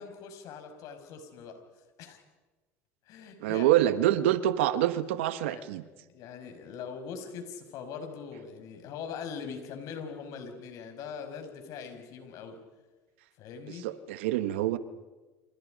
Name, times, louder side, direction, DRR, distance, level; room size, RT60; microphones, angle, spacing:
voice 1, 0.0-1.6 2.0-2.2 3.1-3.9 5.4-5.7 6.1-12.6 13.4-13.9, left 6 dB, 65° left, 6 dB, 5.6 m, -42 dB
voice 2, 3.4-5.8 13.8-14.8, right 13 dB, 90° right, 12 dB, 1.2 m, -26 dB
29.0 x 28.5 x 5.2 m, 1.2 s
supercardioid pair, 95°, 6 cm